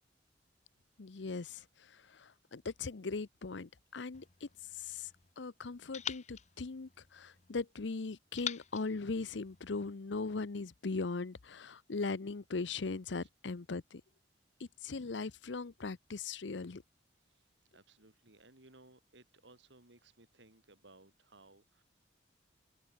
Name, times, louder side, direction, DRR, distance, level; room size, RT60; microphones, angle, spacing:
voice 1, 1.0-4.5 4.8-5.1 5.4-14.0 14.6-16.8, left 4 dB, 75° left, 0.7 m, -39 dB
sound 1, 4.1-5.3 5.9-7.6 8.4-10.0, left 8 dB, 40° left, 1.4 m, -46 dB
voice 2, 17.3-21.8, right 2 dB, 75° right, 3.8 m, -61 dB
open air
head